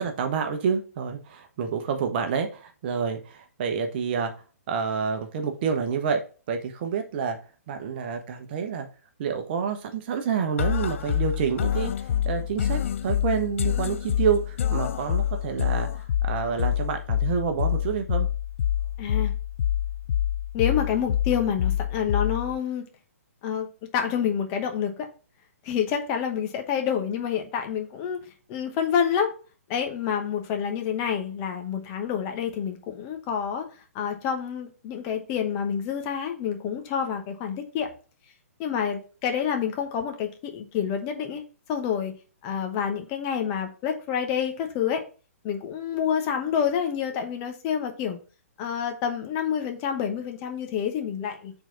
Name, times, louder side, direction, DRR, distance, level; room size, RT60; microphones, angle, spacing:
voice 1, 0.0-4.3 4.7-7.4 7.7-8.9 9.2-18.3, right 6 dB, 40° right, 6 dB, 1.1 m, -28 dB
sound 1, 10.6-22.6, left 10 dB, 55° left, 0.3 m, -27 dB
voice 2, 19.0-19.3 20.5-22.8 23.4-23.7 23.9-25.1 25.6-28.2 28.5-29.3 29.7-33.6 33.9-37.9 38.6-41.4 41.7-42.1 42.4-45.0 45.4-48.2 48.6-51.5, left 8 dB, 30° left, 4 dB, 1.0 m, -28 dB
4.6 x 3.9 x 5.7 m, 0.36 s
figure-of-eight pair, 130°, 8 cm